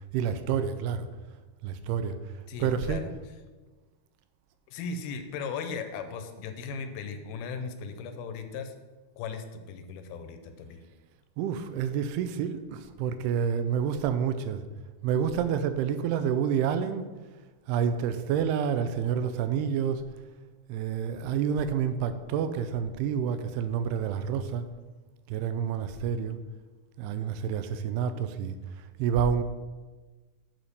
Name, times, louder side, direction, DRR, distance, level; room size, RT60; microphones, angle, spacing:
voice 1, 0.1-1.1 1.6-2.2 2.6-3.0 11.4-14.6 15.0-17.1 17.7-20.0 20.7-24.6 25.3-26.4 27.0-29.4, right 7 dB, 85° right, 10 dB, 2.6 m, -28 dB
voice 2, 2.5-3.1 4.7-8.7 9.2-10.8, left 5 dB, 80° left, 7 dB, 2.5 m, -37 dB
8.9 x 4.3 x 6.8 m, 1.3 s
omnidirectional pair, 4.6 m